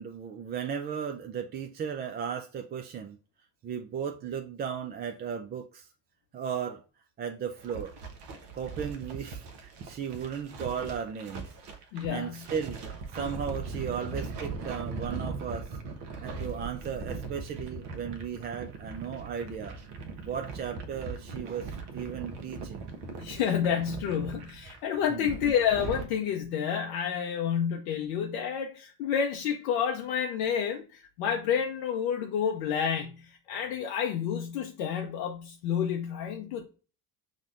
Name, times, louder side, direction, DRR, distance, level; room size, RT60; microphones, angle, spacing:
voice 1, 0.0-3.2 3.6-5.9 6.3-6.8 7.2-7.9 8.5-11.5 12.1-12.8 13.1-15.7 16.2-19.8 20.2-22.9 25.1-25.3, right 7 dB, 25° right, 0.3 m, -35 dB
sound 1, 7.6-26.1, right 4 dB, 55° right, 0.8 m, -40 dB
voice 2, 11.9-12.4 23.2-36.7, left 8 dB, 70° left, 0.7 m, -29 dB
6.1 x 2.1 x 2.5 m
hypercardioid pair, 55°, 49 cm